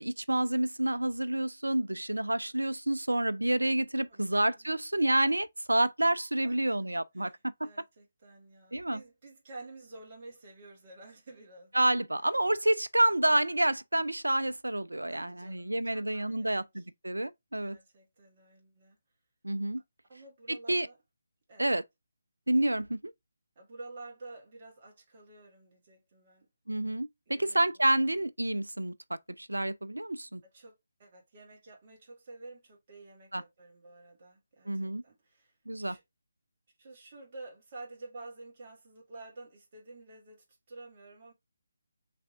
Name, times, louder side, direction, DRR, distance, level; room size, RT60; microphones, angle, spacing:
voice 1, 0.0-7.3 7.6-7.7 8.7-9.0 11.7-17.8 19.4-19.8 20.5-20.9 21.6-21.8 22.5-23.1 26.7-30.4 33.3-33.4 34.7-35.0 35.7-36.0, right 1 dB, 75° right, 0.5 m, -29 dB
voice 2, 4.1-4.7 6.4-6.8 7.1-11.8 15.1-16.9 17.6-19.0 20.1-21.0 21.5-21.7 23.6-26.5 27.3-27.9 30.5-36.0 36.8-41.3, right 2 dB, 35° right, 1.9 m, -50 dB
5.8 x 3.4 x 2.4 m
figure-of-eight pair, 150°, 0 cm